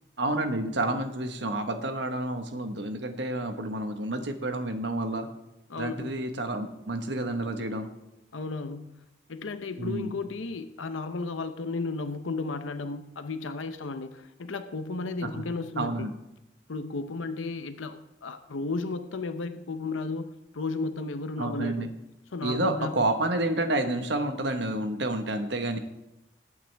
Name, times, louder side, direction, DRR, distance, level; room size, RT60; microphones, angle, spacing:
voice 1, 0.2-5.3 5.8-7.9 9.8-10.2 15.3-15.4 15.8-16.1 21.4-21.9 22.4-25.8, right 2 dB, 65° right, 7 dB, 1.3 m, -29 dB
voice 2, 5.7-6.1 8.3-9.0 9.3-16.1 16.7-21.9 22.3-23.0, left 3 dB, 85° left, 10 dB, 0.7 m, -34 dB
21.5 x 8.7 x 3.4 m, 0.93 s
head